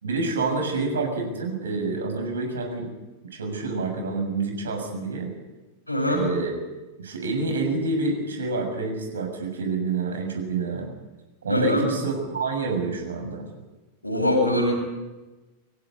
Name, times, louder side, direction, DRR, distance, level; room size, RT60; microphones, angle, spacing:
voice 1, 0.0-2.9 3.3-5.3 6.1-6.5 7.0-10.9 11.4-13.5, right 3 dB, 70° right, 3 dB, 6.8 m, -27 dB
voice 2, 5.9-6.2 11.5-11.8 14.0-14.7, left 1 dB, 85° left, -1 dB, 7.8 m, -22 dB
25.0 x 16.0 x 9.7 m, 1.1 s
figure-of-eight pair, 90°, 0 cm